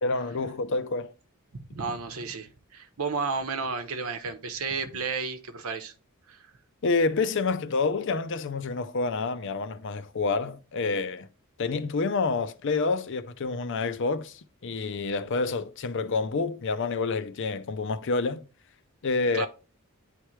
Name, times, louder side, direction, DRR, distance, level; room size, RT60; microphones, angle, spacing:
voice 1, 0.0-1.1 6.8-11.3 11.6-18.4 19.0-19.5, left 4 dB, 55° left, 0.5 m, -28 dB
voice 2, 1.5-5.9 6.3-6.4 19.3-19.5, right 4 dB, 70° right, 1.0 m, -32 dB
9.9 x 3.3 x 3.1 m
head